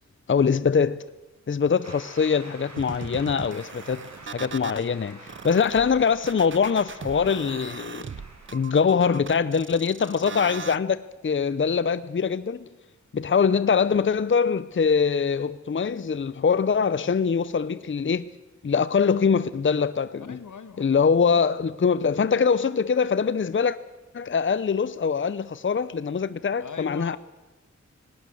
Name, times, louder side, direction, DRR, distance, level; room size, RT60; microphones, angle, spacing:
voice 1, 0.3-1.0 1.5-5.2 5.4-8.1 8.5-12.7 13.1-18.3 18.6-20.4 20.8-23.8 24.1-27.2, left 6 dB, 40° left, 0.6 m, -23 dB
Shout / Cheering / Applause, 1.8-9.3, right 2 dB, 65° right, 5.2 m, -48 dB
sound 1, 2.8-4.8 5.3-10.8, right 6 dB, 40° right, 0.6 m, -39 dB
voice 2, 20.2-20.9 26.6-27.2, left 6 dB, 85° left, 1.5 m, -39 dB
19.5 x 19.0 x 7.8 m
wide cardioid pair, 100°, 30 cm